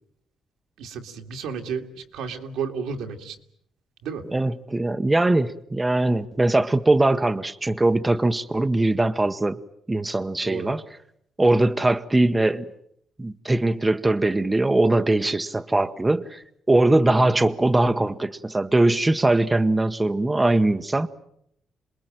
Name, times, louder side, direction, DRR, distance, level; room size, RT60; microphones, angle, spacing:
voice 1, 0.8-3.4 4.0-4.2 10.4-10.7, right 6 dB, 90° right, 2.5 m, -32 dB
voice 2, 4.3-9.6 9.9-10.8 11.4-12.7 13.2-16.4 16.7-21.1, right 2 dB, 15° right, 1.0 m, -21 dB
27.5 x 20.5 x 9.1 m
cardioid pair, 90°, 0 cm